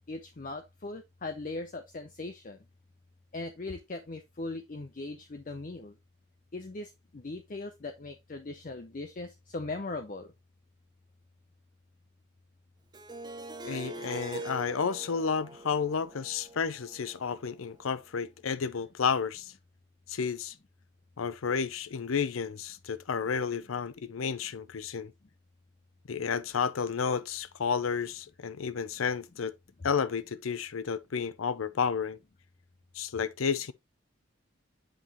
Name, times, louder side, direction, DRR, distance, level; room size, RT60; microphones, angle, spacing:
voice 1, 0.1-2.6 3.3-5.9 6.5-10.3, left 2 dB, 40° left, 0.5 m, -39 dB
Harp, 12.9-17.9, right 2 dB, 20° right, 0.6 m, -43 dB
voice 2, 13.6-19.5 20.1-20.5 21.2-25.1 26.1-29.5 29.8-32.2 32.9-33.7, left 6 dB, 90° left, 0.6 m, -31 dB
7.5 x 5.2 x 2.9 m
head